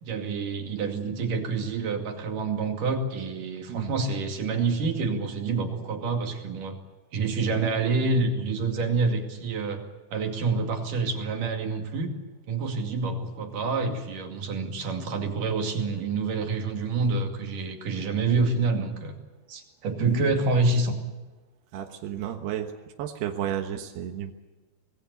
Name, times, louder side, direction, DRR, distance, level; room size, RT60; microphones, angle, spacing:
voice 1, 0.0-6.8 7.1-9.8 10.1-12.1 12.5-19.2 19.5-21.0, right 4 dB, 55° right, 4 dB, 3.7 m, -27 dB
voice 2, 20.0-20.3 21.7-22.7 23.0-24.3, right 10 dB, 75° right, 4 dB, 3.3 m, -32 dB
25.0 x 20.5 x 8.3 m, 1.2 s
omnidirectional pair, 4.8 m